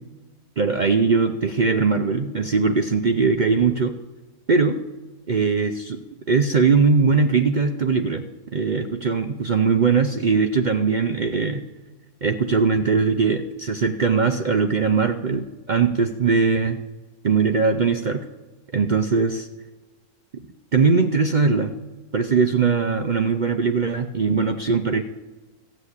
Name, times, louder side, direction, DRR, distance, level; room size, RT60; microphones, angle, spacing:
voice 1, 0.6-3.9 4.5-4.8 5.3-6.0 6.3-8.2 8.5-11.6 12.2-16.8 17.2-18.2 18.7-19.5 20.7-21.7 22.1-25.0, right 5 dB, 60° right, 6 dB, 0.4 m, -20 dB
14.0 x 8.6 x 8.1 m, 1.2 s
omnidirectional pair, 1.6 m